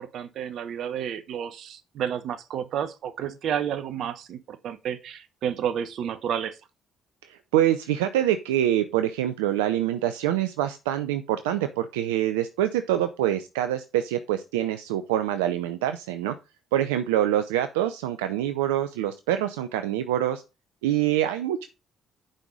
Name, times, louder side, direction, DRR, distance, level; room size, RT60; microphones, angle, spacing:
voice 1, 0.0-6.6, right 9 dB, 65° right, 1.1 m, -31 dB
voice 2, 7.2-16.4 16.7-20.4 20.8-21.7, right 12 dB, 85° right, 0.6 m, -25 dB
9.0 x 5.6 x 4.9 m
hypercardioid pair, 50°, 0 cm